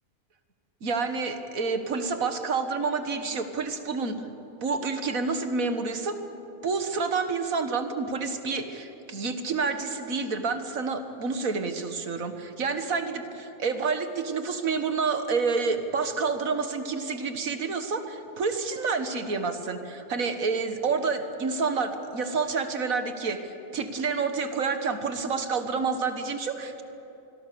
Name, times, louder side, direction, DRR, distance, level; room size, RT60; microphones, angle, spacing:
voice 1, 0.8-4.3 4.6-6.2 6.6-23.4 23.7-26.8, right 4 dB, 65° right, 8 dB, 1.9 m, -29 dB
25.5 x 21.5 x 6.9 m, 3.0 s
omnidirectional pair, 1.5 m